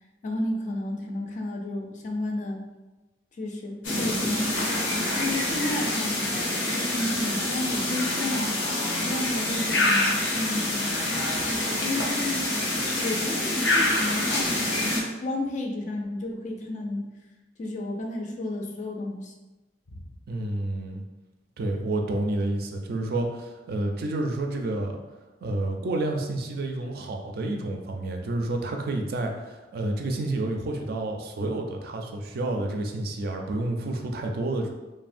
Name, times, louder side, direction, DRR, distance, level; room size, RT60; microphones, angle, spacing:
voice 1, 0.2-2.6 3.4-4.7 5.1-8.5 9.0-10.9 11.5-12.4 12.9-17.0 17.6-19.3 19.9-20.0 26.8-26.9, left 1 dB, 45° left, 2 dB, 0.4 m, -32 dB
sound 1, 3.8-15.0, left 1 dB, 85° left, 0.7 m, -26 dB
voice 2, 20.3-21.0 21.6-25.0 25.4-34.7, right 2 dB, 60° right, 3 dB, 0.3 m, -29 dB
3.2 x 2.1 x 2.5 m, 1.1 s
head